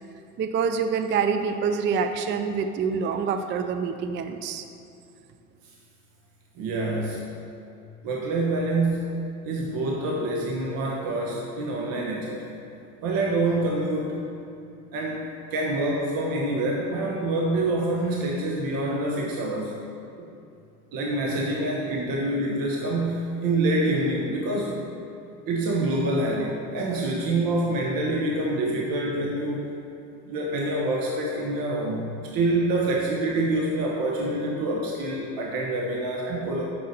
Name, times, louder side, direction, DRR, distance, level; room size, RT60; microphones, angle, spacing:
voice 1, 0.4-4.6, right 6 dB, 25° right, 8 dB, 0.4 m, -26 dB
voice 2, 6.6-7.2 8.0-12.5 13.0-14.2 14.9-15.2 15.5-19.7 20.9-24.7 25.5-29.7 30.3-36.7, right 2 dB, 50° right, -2 dB, 1.2 m, -26 dB
6.4 x 6.2 x 5.4 m, 2.7 s
hypercardioid pair, 80°, 44 cm